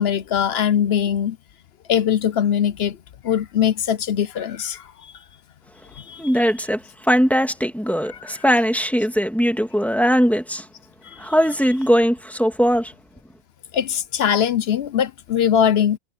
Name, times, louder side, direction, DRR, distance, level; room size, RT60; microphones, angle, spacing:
voice 1, 0.0-1.4 1.9-3.0 3.2-4.9 6.0-6.2 8.1-8.4 11.0-11.2 13.7-16.0, left 9 dB, 60° left, 0.8 m, -21 dB
voice 2, 6.2-10.7 11.2-12.9, equal, ahead, 1.9 m, -20 dB
omnidirectional pair, 1.4 m